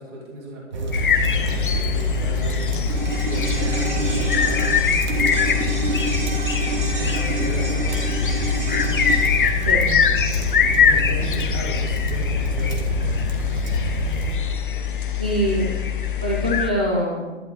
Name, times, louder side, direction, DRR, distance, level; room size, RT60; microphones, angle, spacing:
voice 1, 0.0-5.9 7.0-8.0 10.6-12.9, right 1 dB, 25° right, -3 dB, 2.4 m, -35 dB
sound 1, 0.7-14.4, right 2 dB, 40° right, 1.5 m, -27 dB
sound 2, 0.9-16.7, left 8 dB, 45° left, 1.0 m, -23 dB
sound 3, 2.9-11.4 11.7-11.8, right 1 dB, 75° right, 4.6 m, -30 dB
voice 2, 15.2-15.8 16.2-17.4, equal, 5° right, -2 dB, 0.6 m, -24 dB
11.5 x 9.9 x 4.6 m, 1.2 s
hypercardioid pair, 165°, 36 cm